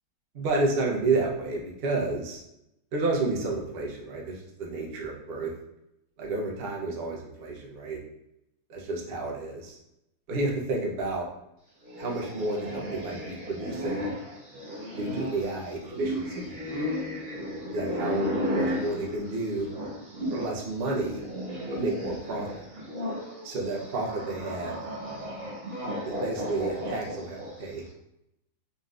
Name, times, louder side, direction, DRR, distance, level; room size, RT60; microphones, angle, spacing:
voice 1, 0.3-2.4 2.9-5.5 6.2-8.0 8.7-9.8 10.3-11.3 12.0-14.1 15.0-16.5 17.7-19.7 20.3-21.2 21.7-22.6 23.4-24.8 26.0-27.9, right 2 dB, 55° right, -1 dB, 0.6 m, -31 dB
sound 1, 11.8-20.6 20.9-27.7, equal, 40° right, 0.9 m, -34 dB
4.0 x 3.9 x 2.4 m, 0.85 s
omnidirectional pair, 2.1 m